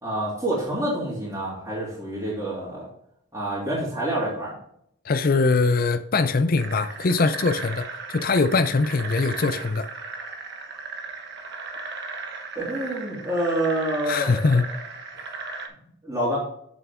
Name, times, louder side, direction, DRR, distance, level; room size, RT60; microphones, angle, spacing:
voice 1, 0.0-2.9 3.3-4.5 12.5-14.6 16.0-16.4, right 1 dB, 15° right, 3.0 m, -27 dB
voice 2, 5.0-9.9 14.0-14.7, left 3 dB, 45° left, 0.5 m, -22 dB
sound 1, 6.6-15.7, right 3 dB, 55° right, 1.2 m, -36 dB
8.3 x 7.2 x 3.6 m
head